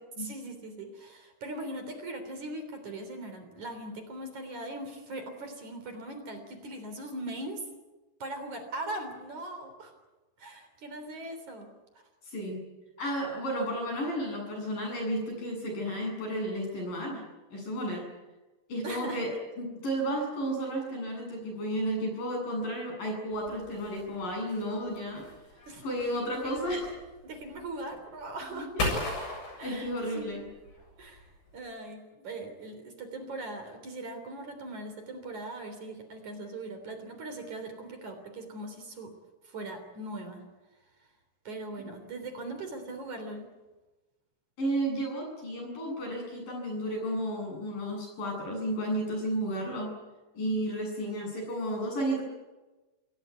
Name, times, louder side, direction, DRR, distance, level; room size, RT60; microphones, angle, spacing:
voice 1, 0.2-7.6 8.2-9.9 10.4-11.7 18.8-19.2 25.7-25.9 26.1-26.7 27.2-28.7 29.6-30.3 31.0-39.1 39.4-40.4 41.4-43.5, right 2 dB, 50° right, 6 dB, 4.6 m, -40 dB
voice 2, 12.3-12.7 13.0-17.2 17.5-18.1 18.7-25.2 25.8-26.9 28.5-29.0 29.6-30.5 41.8-41.9 44.6-49.9 50.3-52.2, right 1 dB, 55° left, 2 dB, 9.8 m, -32 dB
sound 1, 23.3-31.7, left 2 dB, 90° left, 9.8 m, -39 dB
27.5 x 18.0 x 9.6 m, 1.1 s
omnidirectional pair, 4.6 m